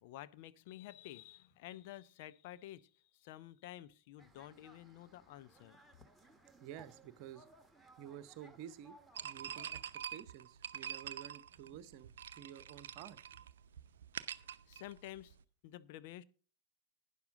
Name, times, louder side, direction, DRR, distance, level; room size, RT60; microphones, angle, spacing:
voice 1, 0.0-5.8 14.4-15.4 15.6-16.2, left 14 dB, 50° left, 0.7 m, -51 dB
sound 1, 4.2-10.0, right 1 dB, 5° right, 1.6 m, -63 dB
voice 2, 6.6-7.5 8.0-9.0 9.2-9.8 10.1-13.2, right 10 dB, 45° right, 1.0 m, -51 dB
Ice Water, 9.1-15.4, right 9 dB, 60° right, 0.7 m, -46 dB
11.5 x 10.0 x 3.8 m
figure-of-eight pair, 90°, 0 cm